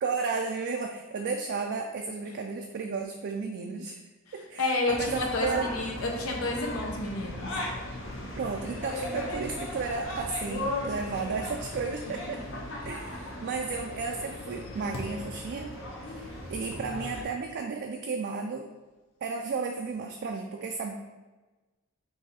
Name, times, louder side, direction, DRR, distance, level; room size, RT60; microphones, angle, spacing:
voice 1, 0.0-4.0 4.3-5.7 8.4-12.4 12.8-15.7 16.1-18.7 19.2-20.9, right 4 dB, 55° right, 3 dB, 0.3 m, -33 dB
voice 2, 4.6-7.5, left 2 dB, 90° left, 1 dB, 0.9 m, -30 dB
sound 1, 4.9-17.2, left 1 dB, 65° left, 1.0 m, -37 dB
4.7 x 2.7 x 4.1 m, 1.2 s
head